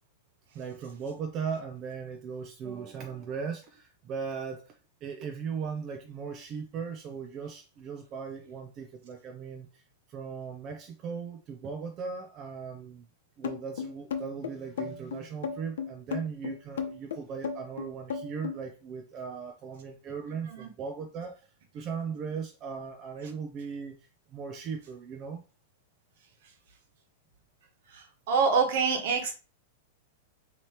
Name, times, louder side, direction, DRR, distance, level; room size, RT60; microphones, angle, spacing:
voice 1, 0.5-9.8 10.1-13.1 13.4-21.5 21.7-25.4, right 6 dB, 25° right, 5 dB, 0.5 m, -38 dB
sound 1, 13.4-18.6, left 6 dB, 85° left, 0.7 m, -34 dB
voice 2, 27.9-29.3, right 5 dB, 55° right, 5 dB, 1.1 m, -26 dB
3.3 x 2.8 x 4.3 m, 0.33 s
supercardioid pair, 165°, 0 cm